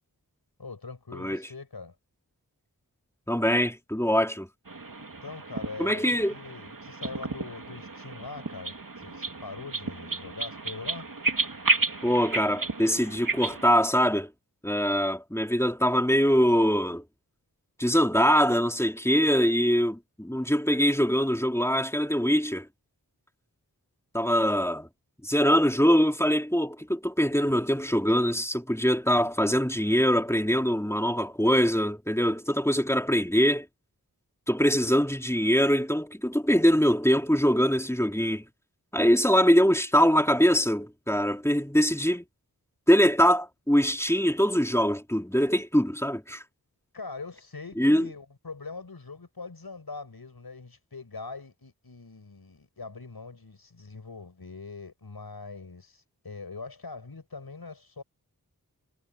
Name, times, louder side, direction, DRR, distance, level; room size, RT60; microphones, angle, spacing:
voice 1, 0.6-1.9 5.2-11.1 46.9-58.0, left 4 dB, 80° left, 6.7 m, -42 dB
voice 2, 3.3-4.5 5.8-6.3 12.0-14.3 14.6-17.0 17.8-22.7 24.1-24.9 25.2-33.7 34.5-38.4 38.9-42.2 42.9-46.4 47.8-48.1, equal, 5° left, 3.1 m, -23 dB
sound 1, 4.7-13.7, right 3 dB, 60° right, 3.1 m, -32 dB
wide cardioid pair, 50°, 37 cm